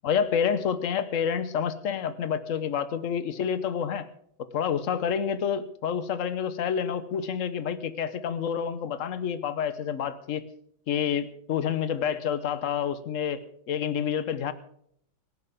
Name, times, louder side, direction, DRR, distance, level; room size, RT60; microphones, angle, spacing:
voice 1, 0.0-4.1 4.4-10.4 10.9-13.4 13.7-14.5, left 7 dB, 50° left, 12 dB, 1.0 m, -28 dB
24.0 x 11.0 x 3.6 m, 0.68 s
omnidirectional pair, 2.3 m